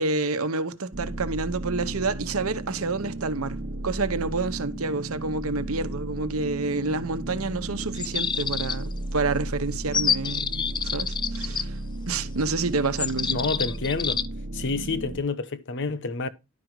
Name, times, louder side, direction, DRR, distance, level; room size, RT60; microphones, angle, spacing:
voice 1, 0.0-10.6 10.9-11.7 12.1-13.4, right 3 dB, 80° right, 1.0 m, -28 dB
sound 1, 0.9-15.2, right 1 dB, 55° right, 1.0 m, -34 dB
sound 2, 7.9-9.0 9.9-11.6 13.0-14.3, left 7 dB, 20° left, 0.4 m, -27 dB
voice 2, 13.3-14.2 14.5-16.3, left 3 dB, 60° left, 0.9 m, -28 dB
11.0 x 5.2 x 4.7 m
head